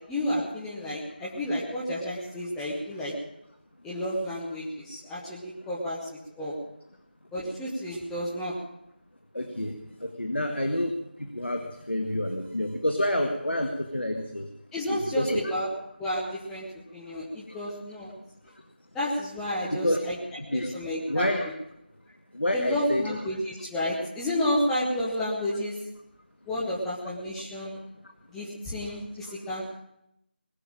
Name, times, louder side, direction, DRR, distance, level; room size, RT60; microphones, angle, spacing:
voice 1, 0.1-3.1 3.8-6.5 7.3-8.5 14.7-15.7 16.0-16.7 16.9-18.1 18.9-20.2 20.5-21.3 22.5-25.8 26.5-27.8 28.3-29.7, left 1 dB, 5° left, -7 dB, 1.0 m, -31 dB
voice 2, 9.4-9.7 10.2-10.9 11.2-11.6 11.9-14.4 14.9-15.5 19.7-20.0 20.5-20.7 21.1-21.5 22.4-23.1, left 1 dB, 80° left, 5 dB, 1.7 m, -28 dB
20.5 x 7.0 x 8.8 m, 0.80 s
figure-of-eight pair, 165°, 6 cm